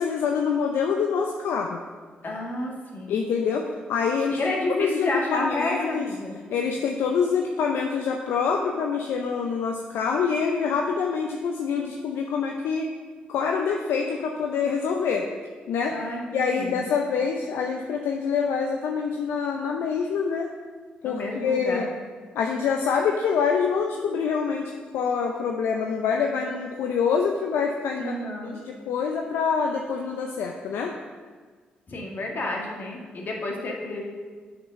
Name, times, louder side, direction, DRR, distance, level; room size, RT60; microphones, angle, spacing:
voice 1, 0.0-1.8 3.1-6.1 6.5-12.9 13.3-15.3 15.7-16.0 16.3-20.5 21.0-21.9 22.3-28.2 28.4-30.9, left 6 dB, 75° left, 2 dB, 0.6 m, -26 dB
voice 2, 2.2-3.3 4.3-6.4 15.9-16.9 21.0-21.9 28.0-28.6 31.9-34.0, left 1 dB, 50° left, -1 dB, 1.9 m, -30 dB
6.8 x 5.9 x 5.6 m, 1.5 s
hypercardioid pair, 45°, 4 cm